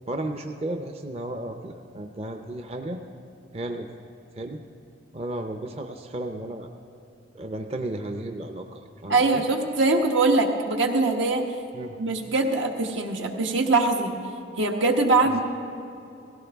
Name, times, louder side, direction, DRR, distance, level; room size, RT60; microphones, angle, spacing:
voice 1, 0.1-3.0 3.5-3.9 4.4-4.6 5.1-6.7 7.3-9.4 11.7-12.0 15.3-15.4, right 1 dB, 30° right, 5 dB, 0.5 m, -34 dB
voice 2, 9.1-11.4 12.0-14.2 14.6-15.4, right 3 dB, 80° right, 3 dB, 1.2 m, -22 dB
17.5 x 15.5 x 3.5 m, 2.7 s
head